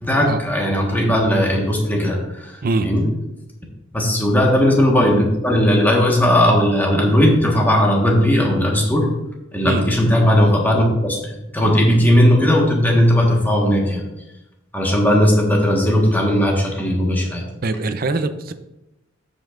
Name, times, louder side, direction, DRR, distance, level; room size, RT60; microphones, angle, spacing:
voice 1, 0.0-3.0 3.9-9.1 9.5-14.0 14.7-17.4, equal, 10° left, -1 dB, 1.4 m, -17 dB
voice 2, 17.6-18.5, right 3 dB, 50° right, 10 dB, 0.5 m, -22 dB
13.5 x 5.3 x 2.5 m, 0.95 s
head